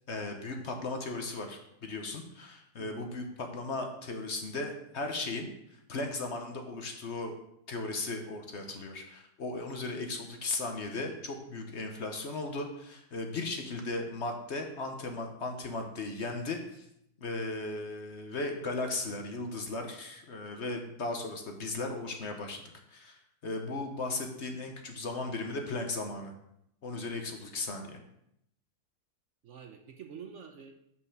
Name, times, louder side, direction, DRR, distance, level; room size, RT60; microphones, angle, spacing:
voice 1, 0.1-5.5 5.9-7.3 7.7-16.9 17.2-22.6 22.9-26.3 26.8-28.0, left 2 dB, 50° left, 4 dB, 1.1 m, -36 dB
voice 2, 29.4-30.7, right 7 dB, 60° right, 5 dB, 0.9 m, -47 dB
5.5 x 5.3 x 6.5 m, 0.77 s
omnidirectional pair, 1.6 m